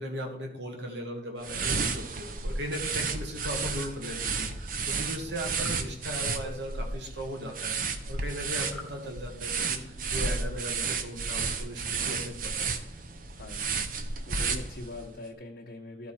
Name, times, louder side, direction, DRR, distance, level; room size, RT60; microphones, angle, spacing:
voice 1, 0.0-12.7, equal, 85° right, 3 dB, 1.4 m, -38 dB
sound 1, 1.4-15.1, right 4 dB, 50° right, 0.7 m, -32 dB
sound 2, 5.4-5.8 8.6-9.0, left 3 dB, 5° left, 1.0 m, -45 dB
voice 2, 13.3-13.8 14.2-16.1, left 2 dB, 55° left, -3 dB, 0.9 m, -42 dB
12.5 x 4.7 x 4.2 m, 0.82 s
head